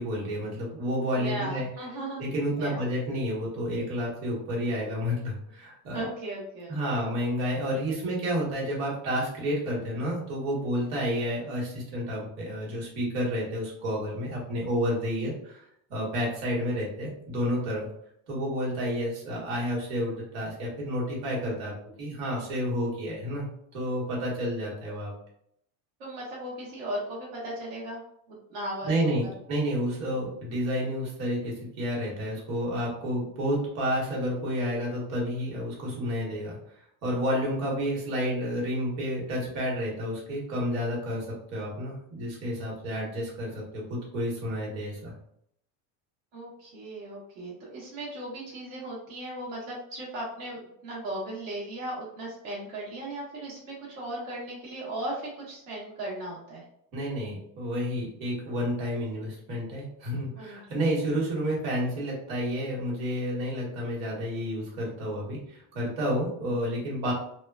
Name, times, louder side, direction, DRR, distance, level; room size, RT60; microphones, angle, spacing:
voice 1, 0.0-1.7 2.2-6.1 6.7-15.6 15.9-17.9 18.3-21.7 22.0-25.1 28.8-36.6 37.0-45.1 56.9-67.1, equal, 85° right, -3 dB, 1.4 m, -30 dB
voice 2, 1.1-2.2 2.6-2.8 5.9-7.1 26.0-28.0 28.5-29.3 46.3-56.6 60.4-60.6, right 1 dB, 55° right, -5 dB, 1.2 m, -37 dB
3.5 x 2.2 x 2.3 m, 0.71 s
cardioid pair, 175°, 41 cm